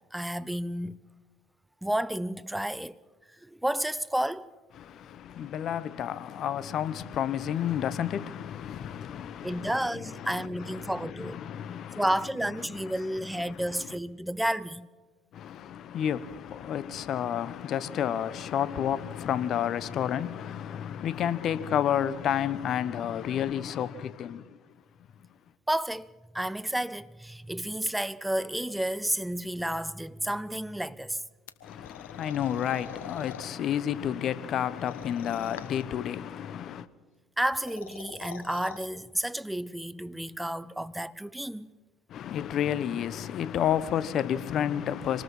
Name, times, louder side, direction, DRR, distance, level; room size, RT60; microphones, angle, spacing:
voice 1, 0.1-1.0 1.8-3.0 3.4-4.5 9.4-11.4 12.0-14.9 25.7-26.1 26.3-31.2 37.4-41.7, right 1 dB, 5° right, 0.8 m, -31 dB
voice 2, 4.8-12.1 12.6-13.1 13.3-13.9 15.3-24.6 31.6-36.9 42.1-45.2, left 9 dB, 55° left, 1.0 m, -31 dB
sound 1, 31.5-33.5 34.8-36.0 37.4-38.9, left 9 dB, 85° left, 1.3 m, -45 dB
25.5 x 19.5 x 5.6 m
hypercardioid pair, 70°, 0 cm